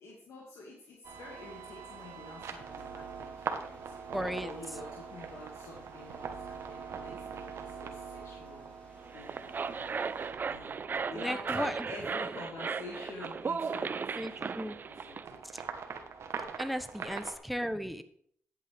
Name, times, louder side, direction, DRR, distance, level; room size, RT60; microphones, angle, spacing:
voice 1, 0.0-4.1 4.4-10.0 10.5-10.8 11.1-14.8 15.1-15.7 17.0-17.1, left 2 dB, 85° left, -3 dB, 2.3 m, -48 dB
sound 1, 1.0-17.4, right 6 dB, 70° right, 1.3 m, -43 dB
sound 2, 1.1-10.3, left 1 dB, 25° left, 4.3 m, -60 dB
voice 2, 4.1-4.5 11.1-11.9 14.2-14.8 15.5-15.6 16.6-18.0, equal, ahead, 10 dB, 0.9 m, -35 dB
sound 3, 9.0-15.2, right 5 dB, 45° right, 0.5 m, -36 dB
11.0 x 8.6 x 3.5 m, 0.64 s
cardioid pair, 75°, 5 cm